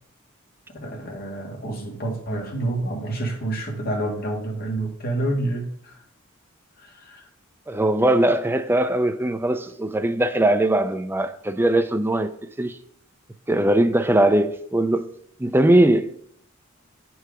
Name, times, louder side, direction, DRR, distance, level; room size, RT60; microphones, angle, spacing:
voice 1, 0.8-6.0 6.8-7.3, right 1 dB, 45° left, 1.9 m, -28 dB
voice 2, 7.7-12.3 12.6-12.8 13.5-15.1 15.4-16.3, right 1 dB, 10° right, 0.5 m, -20 dB
9.4 x 4.7 x 5.0 m
head